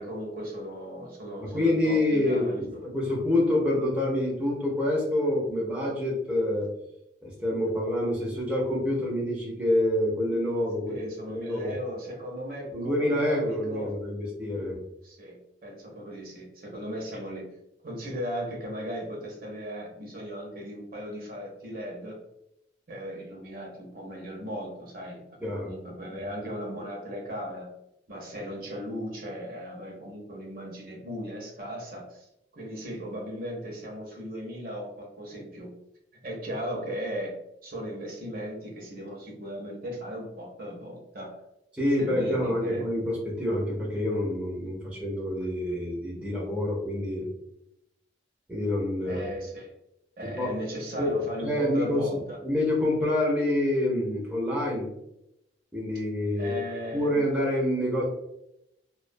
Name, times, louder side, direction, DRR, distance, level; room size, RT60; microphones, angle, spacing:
voice 1, 0.0-2.8 10.9-13.9 15.0-15.4 15.6-17.5 17.8-22.2 22.9-25.2 25.6-27.7 28.1-32.3 32.5-35.7 36.2-41.4 42.0-42.9 49.0-49.7 50.2-52.4 56.4-57.2, equal, 50° right, -1 dB, 0.6 m, -37 dB
voice 2, 1.4-6.7 7.2-11.0 11.3-11.7 12.7-14.8 25.4-25.7 41.7-47.2 48.5-49.3 50.3-50.5 51.0-51.1 51.4-54.9 55.7-56.6 56.9-58.0, left 1 dB, 5° right, -4 dB, 0.5 m, -27 dB
2.3 x 2.2 x 2.5 m, 0.83 s
head